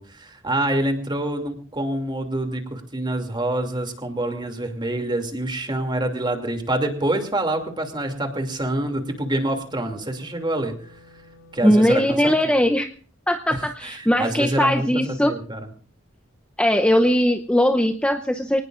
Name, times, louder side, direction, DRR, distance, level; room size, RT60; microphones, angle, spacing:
voice 1, 0.0-10.9 11.5-12.3 13.5-15.7, right 1 dB, 25° right, 5 dB, 2.7 m, -26 dB
Wind instrument woodwind instrument, 7.0-12.1, left 2 dB, 90° left, 4.5 m, -51 dB
voice 2, 11.6-12.9 13.3-15.3 16.6-18.6, equal, 5° left, 5 dB, 0.7 m, -19 dB
25.0 x 18.5 x 2.5 m, 0.42 s
head